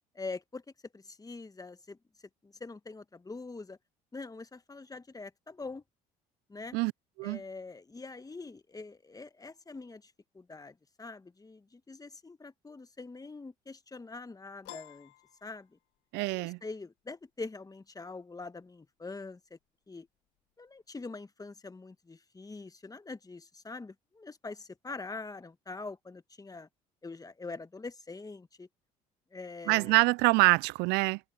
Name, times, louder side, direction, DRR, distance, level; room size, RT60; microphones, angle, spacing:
voice 1, 0.1-0.6 0.9-2.0 2.4-3.8 4.1-5.8 6.5-6.8 7.2-15.1 15.4-15.7 16.3-19.6 19.9-20.1 20.6-26.7 27.0-28.7 29.3-30.0, left 3 dB, 20° left, 1.7 m, -44 dB
Piano, 14.6-16.2, left 19 dB, 70° left, 2.6 m, -51 dB
voice 2, 16.1-16.6 29.7-31.2, right 24 dB, 65° right, 0.5 m, -25 dB
hypercardioid pair, 60°, 18 cm